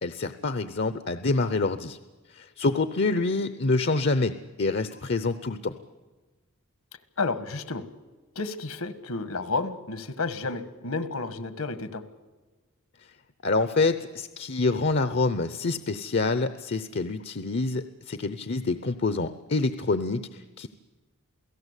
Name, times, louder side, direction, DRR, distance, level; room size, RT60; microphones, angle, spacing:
voice 1, 0.0-2.0 2.3-4.3 4.6-5.7 13.4-20.7, left 3 dB, 50° left, 11 dB, 0.7 m, -26 dB
voice 2, 7.2-7.8 8.3-12.0, left 3 dB, 75° left, 12 dB, 1.6 m, -31 dB
28.5 x 17.5 x 8.3 m, 1.2 s
head